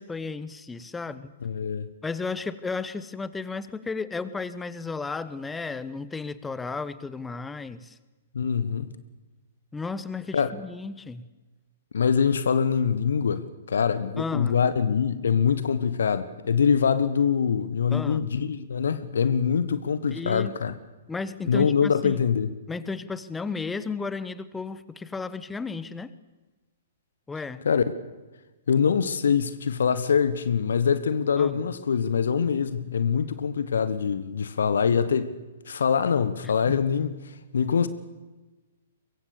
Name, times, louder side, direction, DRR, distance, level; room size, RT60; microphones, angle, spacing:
voice 1, 0.0-1.3 2.0-8.0 9.7-11.3 14.2-14.6 17.9-18.3 20.1-20.8 21.1-22.2 22.7-26.1 27.3-27.6 31.4-31.6 36.4-36.7, left 4 dB, 10° left, 1.1 m, -34 dB
voice 2, 1.4-1.9 8.3-8.9 10.3-10.5 11.9-20.8 21.5-22.5 27.6-27.8 28.7-35.3 35.7-37.1 37.5-37.9, left 6 dB, 65° left, 1.3 m, -24 dB
23.0 x 23.0 x 6.9 m
figure-of-eight pair, 115°, 0 cm